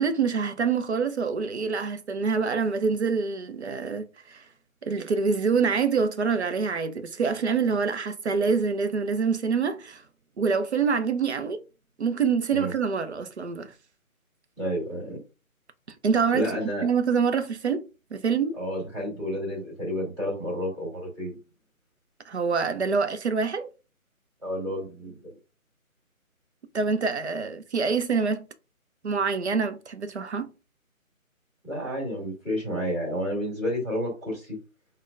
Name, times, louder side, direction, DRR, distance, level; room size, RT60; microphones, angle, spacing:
voice 1, 0.0-4.4 4.8-10.0 10.4-11.6 12.0-13.7 16.0-16.5 16.8-17.8 18.1-18.6 22.3-23.7 26.7-28.5 29.0-30.5, right 5 dB, 50° right, 0.5 m, -26 dB
voice 2, 14.6-15.2 16.3-16.9 18.5-21.3 24.4-25.3 31.6-34.6, equal, 20° right, 1.8 m, -30 dB
6.0 x 2.1 x 2.4 m
figure-of-eight pair, 155°, 43 cm